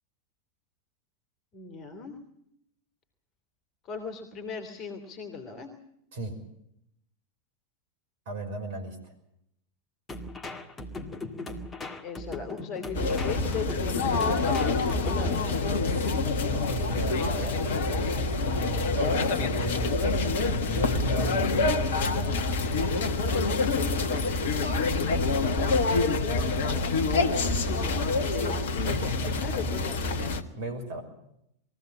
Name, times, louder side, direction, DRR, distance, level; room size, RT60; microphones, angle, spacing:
voice 1, 1.5-2.2 3.8-5.7 12.0-15.6 24.0-24.4 27.4-29.1 29.4-30.4, left 5 dB, 35° left, 6 dB, 2.9 m, -38 dB
voice 2, 8.3-9.1 15.9-16.1 16.5-20.0 20.3-21.7 26.2-27.8 28.9-29.7 30.5-31.0, right 1 dB, 55° right, 5 dB, 5.7 m, -36 dB
sound 1, 10.1-15.6, left 2 dB, 15° left, 2.0 m, -39 dB
sound 2, 12.9-30.4, left 3 dB, 55° left, 1.5 m, -26 dB
22.0 x 16.0 x 8.6 m, 0.77 s
figure-of-eight pair, 90°, 0 cm